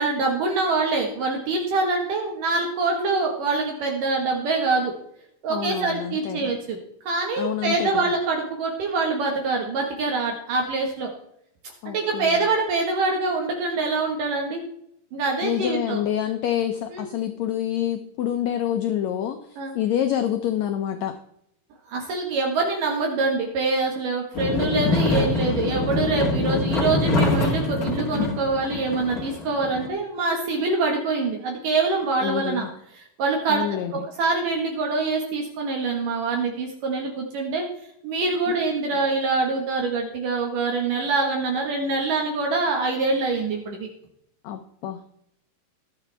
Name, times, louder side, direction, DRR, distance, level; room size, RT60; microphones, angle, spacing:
voice 1, 0.0-4.9 5.4-6.8 7.1-11.1 11.9-14.6 15.1-16.0 16.9-17.1 19.6-19.7 21.9-32.7 32.9-33.7 34.2-37.6 38.0-43.9, right 3 dB, 70° right, 1 dB, 3.1 m, -25 dB
voice 2, 5.5-6.5 7.4-8.0 11.8-12.5 15.4-21.2 32.2-32.7 33.5-34.1 44.4-45.1, left 10 dB, 75° left, 6 dB, 1.6 m, -27 dB
sound 1, 24.3-29.9, left 2 dB, 35° left, 1.5 m, -24 dB
21.0 x 7.1 x 3.4 m, 0.73 s
omnidirectional pair, 4.0 m